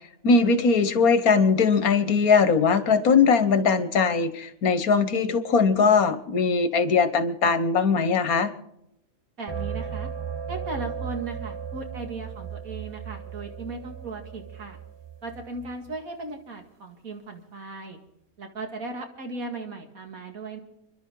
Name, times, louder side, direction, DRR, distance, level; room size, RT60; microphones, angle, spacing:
voice 1, 0.2-8.5, left 5 dB, 80° left, 12 dB, 1.6 m, -20 dB
voice 2, 9.4-10.1 10.5-14.8 15.2-18.0 18.4-20.6, right 3 dB, 75° right, 4 dB, 2.5 m, -37 dB
sound 1, 9.5-16.0, right 7 dB, 30° right, 0.5 m, -36 dB
29.5 x 11.5 x 3.8 m, 0.84 s
omnidirectional pair, 1.5 m